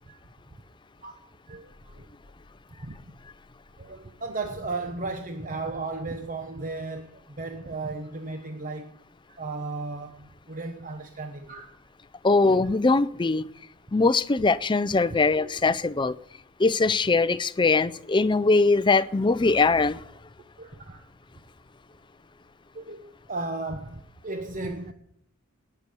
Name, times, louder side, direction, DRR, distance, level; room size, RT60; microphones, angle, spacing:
voice 1, 1.0-2.1 2.8-3.0 3.8-8.9 9.3-11.8 12.6-12.7 15.1-15.7 20.6-21.0 22.7-24.9, right 3 dB, 35° right, 1.0 m, -35 dB
voice 2, 12.2-13.4 13.9-16.2 16.6-20.0, left 3 dB, 20° left, 0.5 m, -21 dB
18.5 x 6.9 x 9.3 m
head